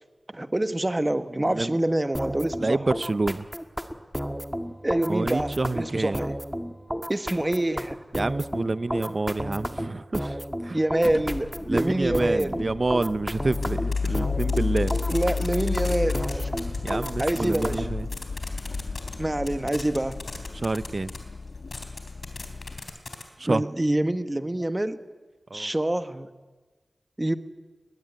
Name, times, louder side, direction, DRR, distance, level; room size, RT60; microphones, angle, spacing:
voice 1, 0.3-2.9 4.8-6.4 7.1-8.0 10.7-12.6 15.1-16.5 17.2-17.9 19.2-20.2 23.5-25.0 25.5-26.3 27.2-27.4, right 1 dB, 20° right, 10 dB, 1.3 m, -26 dB
voice 2, 1.4-1.8 2.6-3.5 5.1-6.2 8.1-10.8 11.7-14.9 16.8-18.1 20.6-21.1 23.4-23.6 25.5-25.7, right 2 dB, 45° right, 16 dB, 0.7 m, -28 dB
sound 1, 2.1-18.0, equal, ahead, 1.7 m, -32 dB
sound 2, 11.0-22.8, left 4 dB, 80° left, 2.0 m, -32 dB
sound 3, 13.6-13.7 13.9-14.1 14.4-17.7 18.1-19.1 19.4-21.2 21.7-23.2, left 3 dB, 60° left, 3.6 m, -37 dB
21.5 x 20.5 x 9.4 m, 1.3 s
wide cardioid pair, 85°, 0 cm